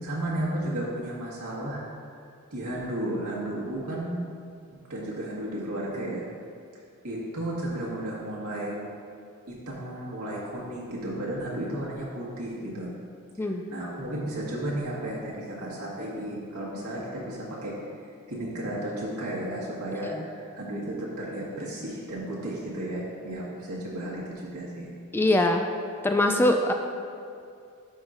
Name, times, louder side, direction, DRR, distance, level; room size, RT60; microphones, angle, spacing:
voice 1, 0.0-1.8 2.5-4.2 4.7-6.2 7.0-8.8 9.5-12.9 13.4-17.8 18.3-24.9, right 1 dB, 85° right, -5 dB, 1.7 m, -33 dB
voice 2, 25.1-25.6 26.0-26.7, left 1 dB, 10° left, 4 dB, 0.3 m, -23 dB
11.5 x 5.6 x 2.6 m, 2.4 s
head